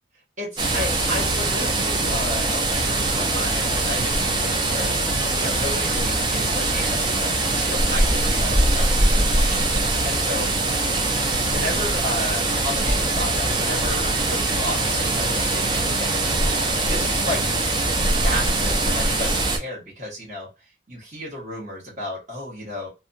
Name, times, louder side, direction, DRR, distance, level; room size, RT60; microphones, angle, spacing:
voice 1, 0.4-4.9 5.3-10.5 11.2-16.2 16.8-17.4 18.0-20.5 20.9-22.9, left 1 dB, 45° right, -5 dB, 1.3 m, -33 dB
sound 1, 0.6-19.6, right 2 dB, 25° right, 0.5 m, -22 dB
2.7 x 2.3 x 2.5 m, 0.27 s
head